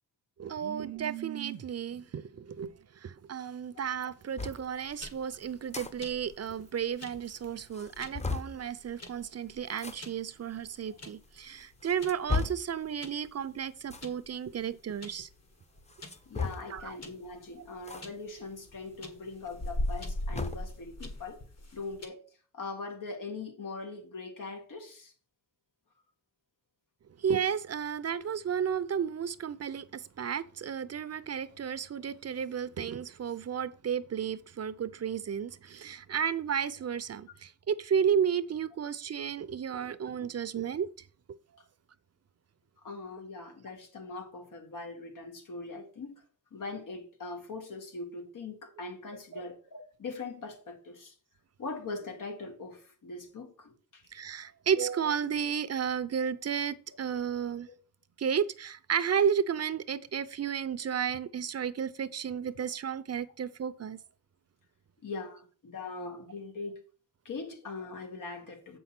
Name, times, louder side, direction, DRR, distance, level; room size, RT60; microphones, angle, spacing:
voice 1, 0.4-2.7 3.0-15.3 16.7-17.0 27.2-40.9 41.3-41.4 49.3-49.4 54.1-57.7 58.2-64.0, right 8 dB, 55° right, 0.6 m, -33 dB
sound 1, 4.4-4.6 5.5-5.9 6.2-6.3 6.6-6.7 7.2-7.3 7.7-8.6 9.7-10.0 10.8-10.9 11.6-12.7 13.8-14.1 15.9-16.8 17.8-18.0 18.4-18.5 19.8-20.7, left 4 dB, 20° left, 0.7 m, -35 dB
sound 2, 4.5-22.1, left 1 dB, 55° left, 1.8 m, -42 dB
voice 2, 16.3-21.4 21.7-22.2 22.5-25.1 42.8-46.2 46.5-51.1 51.6-54.0 57.7-57.8 65.0-66.8 67.3-68.8, left 3 dB, 85° left, 2.1 m, -41 dB
7.5 x 5.5 x 5.9 m
wide cardioid pair, 100°, 31 cm